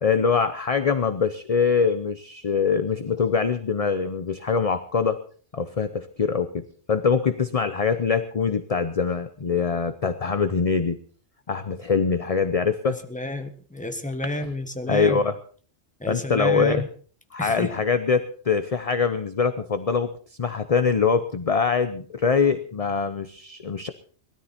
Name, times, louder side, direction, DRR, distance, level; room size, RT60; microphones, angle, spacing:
voice 1, 0.0-5.2 5.5-6.6 6.9-11.0 11.5-13.0 14.4-14.5 14.9-15.4 16.1-16.8 17.3-20.1 20.4-23.9, left 5 dB, 35° left, 10 dB, 0.8 m, -23 dB
voice 2, 13.1-15.2 16.0-16.9 17.4-17.7, left 1 dB, 5° left, 7 dB, 1.4 m, -30 dB
19.0 x 13.5 x 4.3 m, 0.42 s
omnidirectional pair, 1.2 m